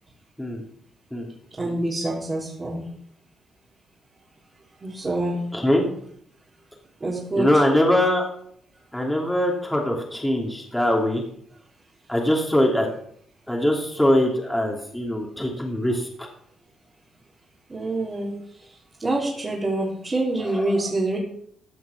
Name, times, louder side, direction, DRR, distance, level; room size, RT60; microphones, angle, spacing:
voice 1, 1.6-2.9 4.8-5.4 7.0-7.6 17.7-18.3 18.6-18.7 19.0-21.2, right 2 dB, 25° right, -5 dB, 3.5 m, -26 dB
voice 2, 5.5-5.9 7.4-8.3 8.9-11.2 12.1-12.9 13.5-16.1 20.5-20.6, left 1 dB, 5° left, -1 dB, 2.9 m, -22 dB
15.0 x 5.9 x 5.9 m, 0.65 s
cardioid pair, 90°, 0 cm